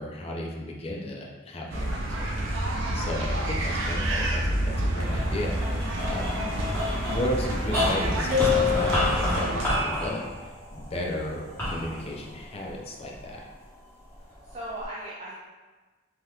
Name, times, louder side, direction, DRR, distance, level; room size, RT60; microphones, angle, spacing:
voice 1, 0.0-2.3 2.6-5.6 6.1-6.6 7.0-10.2 10.7-13.4, left 1 dB, 30° left, -1 dB, 0.4 m, -34 dB
sound 1, 1.7-9.7, right 1 dB, 85° right, 0.5 m, -28 dB
sound 2, 5.1-13.5 14.1-14.9, left 1 dB, 10° left, 1.1 m, -31 dB
voice 2, 5.9-6.6 14.2-15.4, right 1 dB, 35° right, -6 dB, 0.4 m, -40 dB
sound 3, 8.3-9.8, left 10 dB, 60° right, 0.8 m, -26 dB
3.4 x 2.8 x 2.3 m, 1.3 s
head